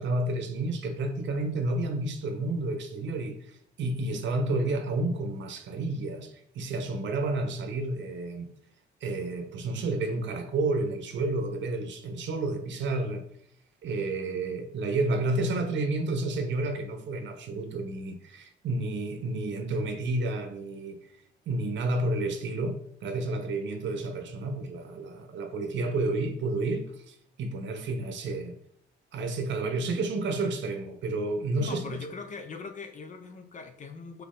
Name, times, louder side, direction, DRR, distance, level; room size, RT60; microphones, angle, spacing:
voice 1, 0.0-8.5 9.0-13.2 13.8-21.0 21.5-28.6 29.1-31.8, right 2 dB, 65° right, 0.7 m, -30 dB
voice 2, 31.6-34.2, left 4 dB, 40° left, 0.5 m, -41 dB
4.2 x 2.7 x 3.7 m
cardioid pair, 90°, 20 cm